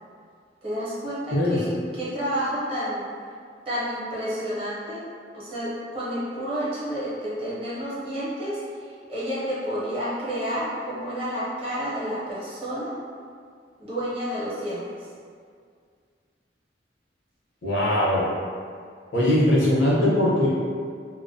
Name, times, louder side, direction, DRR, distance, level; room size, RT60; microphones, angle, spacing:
voice 1, 0.6-3.0 3.7-5.0 5.3-8.6 9.1-12.9 13.8-15.1, equal, 30° right, -9 dB, 0.6 m, -30 dB
voice 2, 17.6-18.2 19.1-20.5, left 1 dB, 85° left, -7 dB, 0.7 m, -20 dB
2.4 x 2.1 x 2.6 m, 2.1 s
head